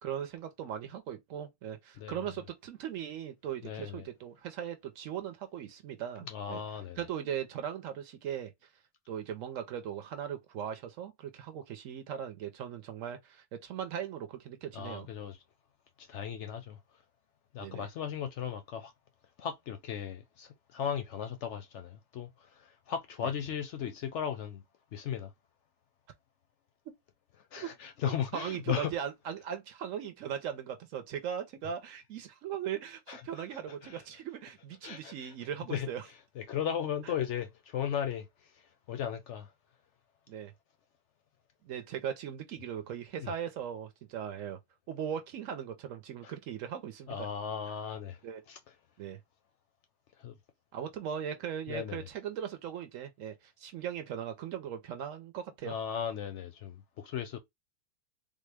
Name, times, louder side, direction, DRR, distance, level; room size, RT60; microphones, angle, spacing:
voice 1, 0.0-6.6 7.0-8.5 9.1-15.1 17.6-17.9 23.2-23.3 27.6-27.7 28.0-36.0 37.0-37.1 40.3-40.5 41.6-44.6 44.9-47.3 48.2-48.4 49.0-49.2 50.7-55.7, right 9 dB, 65° right, 0.9 m, -39 dB
voice 2, 3.6-4.0 6.2-7.0 14.7-15.4 16.0-16.8 17.5-18.9 19.4-24.6 24.9-25.3 27.5-28.9 33.1-34.0 34.8-35.3 35.7-35.9 36.4-38.3 38.9-39.5 43.2-43.3 46.2-46.3 47.1-48.2 48.5-48.6 50.2-50.3 51.7-52.1 55.6-57.4, left 8 dB, 65° left, 0.7 m, -36 dB
3.6 x 2.1 x 3.2 m
omnidirectional pair, 1.6 m